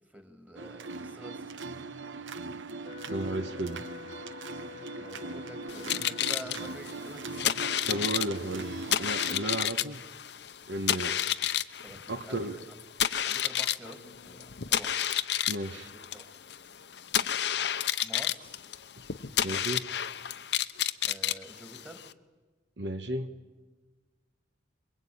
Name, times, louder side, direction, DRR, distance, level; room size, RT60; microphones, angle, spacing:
voice 1, 0.1-1.5 5.0-7.8 11.8-12.5 13.3-15.0 15.6-16.3 18.0-18.6 21.1-22.2, right 1 dB, 10° right, 6 dB, 2.4 m, -48 dB
sound 1, 0.6-9.7, right 3 dB, 85° right, 1.0 m, -40 dB
Wind instrument woodwind instrument, 2.8-7.2, left 8 dB, 45° left, 1.1 m, -48 dB
voice 2, 3.1-3.8 7.9-10.0 10.7-11.2 12.1-12.6 15.5-15.9 19.4-19.9 22.8-23.3, right 1 dB, 70° right, 7 dB, 1.2 m, -34 dB
sound 2, 5.7-22.1, left 10 dB, 65° left, 0.7 m, -31 dB
27.5 x 22.0 x 8.7 m, 1.3 s
head